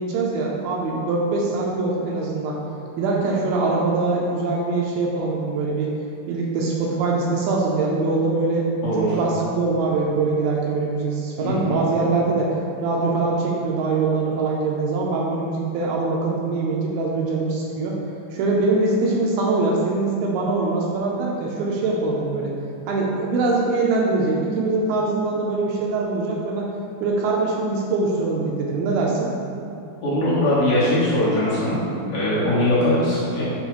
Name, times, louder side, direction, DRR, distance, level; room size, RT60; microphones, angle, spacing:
voice 1, 0.0-2.6 3.0-5.9 6.3-8.7 9.0-12.6 12.8-18.0 18.3-22.5 22.9-26.7 27.0-29.3 32.4-32.5, right 3 dB, 80° right, -2 dB, 2.3 m, -23 dB
voice 2, 8.8-9.2 11.4-11.8 30.0-33.4, left 1 dB, 65° left, -10 dB, 2.1 m, -21 dB
7.0 x 4.6 x 3.0 m, 2.8 s
omnidirectional pair, 4.6 m